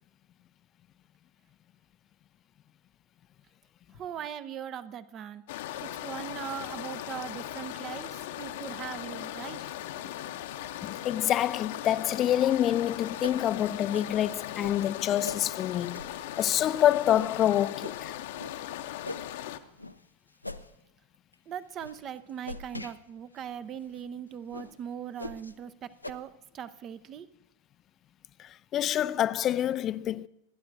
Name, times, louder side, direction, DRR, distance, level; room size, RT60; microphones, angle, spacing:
voice 1, 3.9-5.4 5.8-9.6 21.5-27.3, right 9 dB, 30° right, 0.6 m, -40 dB
sound 1, 5.5-19.6, left 12 dB, 55° left, 0.8 m, -38 dB
voice 2, 10.8-16.0 16.4-18.1 28.7-30.3, left 11 dB, 30° left, 0.4 m, -26 dB
sound 2, 13.2-13.4 13.9-14.1 14.6-14.8 15.2-15.4 15.9-16.2 16.6-16.7 17.1-17.3 17.8-18.0 18.3-18.6 19.0-19.3 19.8-20.0 20.4-20.7 21.1-21.3 21.8-22.0 22.4-22.9 23.4-23.5 23.9-24.0 24.5-24.7 25.2-25.5 26.0-26.1, left 2 dB, 85° left, 0.6 m, -40 dB
27.5 x 11.0 x 2.6 m
figure-of-eight pair, 90°, 0 cm